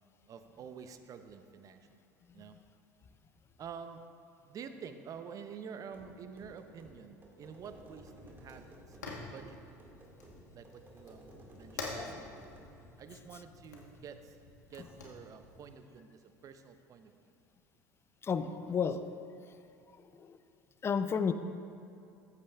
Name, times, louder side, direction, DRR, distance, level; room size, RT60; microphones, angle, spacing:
voice 1, 0.3-1.9 2.3-2.6 3.6-4.0 4.4-9.6 10.5-12.4 13.0-14.4 14.7-17.1 18.5-18.8, right 6 dB, 40° right, 9 dB, 0.7 m, -49 dB
sound 1, 5.9-12.8, right 1 dB, 25° right, 1.9 m, -56 dB
Fire, 7.4-15.8, left 3 dB, 85° left, 1.2 m, -48 dB
voice 2, 11.9-12.3 18.2-19.0 19.9-20.4 20.8-21.3, left 6 dB, 30° left, 11 dB, 0.5 m, -33 dB
14.5 x 8.4 x 2.4 m, 2.6 s
hypercardioid pair, 70°, 9 cm